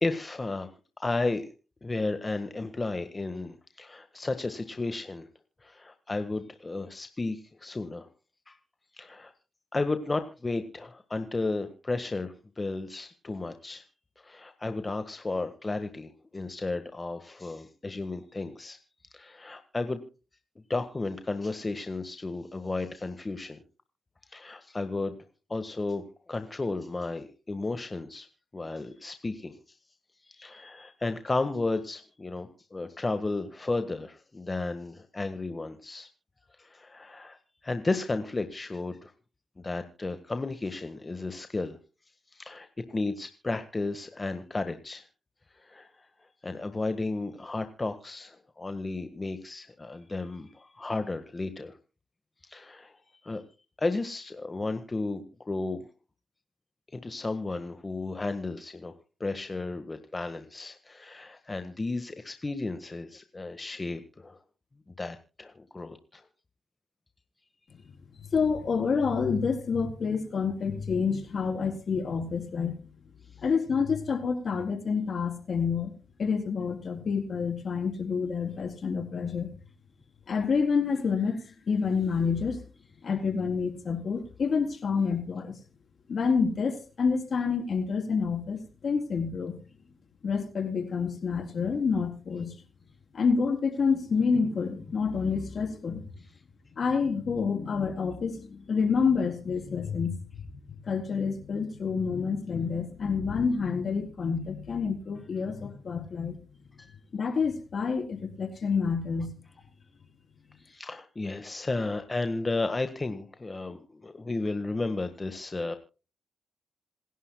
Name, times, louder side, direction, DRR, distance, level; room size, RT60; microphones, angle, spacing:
voice 1, 0.0-1.4 1.8-5.3 5.6-8.1 8.5-8.6 8.9-9.3 9.7-13.8 14.2-18.8 19.1-20.0 20.7-23.6 24.3-25.1 25.5-28.3 28.5-29.8 30.2-36.1 36.6-39.1 39.6-41.8 42.3-45.1 45.5-51.8 52.4-53.4 53.8-55.9 56.9-58.9 59.2-64.4 65.0-66.2 106.8-107.0 110.6-115.7, left 3 dB, 30° left, 8 dB, 1.6 m, -33 dB
voice 2, 68.3-72.7 73.4-75.9 76.2-79.5 80.3-81.4 81.7-82.6 83.0-85.6 86.1-89.5 90.2-92.6 93.1-96.0 96.8-100.2 100.8-106.4 107.1-109.3, left 5 dB, 60° left, 6 dB, 3.8 m, -28 dB
27.0 x 11.0 x 2.3 m, 0.33 s
supercardioid pair, 50°, 0 cm